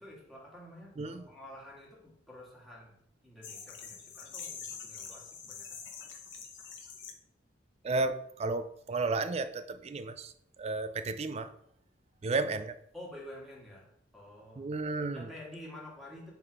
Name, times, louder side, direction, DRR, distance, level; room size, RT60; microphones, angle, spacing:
voice 1, 0.0-2.9 3.2-5.8 12.9-13.9 14.1-14.7 15.1-16.3, left 1 dB, ahead, 1.8 m, -49 dB
sound 1, 3.4-7.1, left 6 dB, 75° left, 0.9 m, -45 dB
voice 2, 7.8-10.3 10.6-11.5 12.2-12.7 14.6-15.3, right 3 dB, 35° right, 0.4 m, -33 dB
5.6 x 3.6 x 4.7 m
head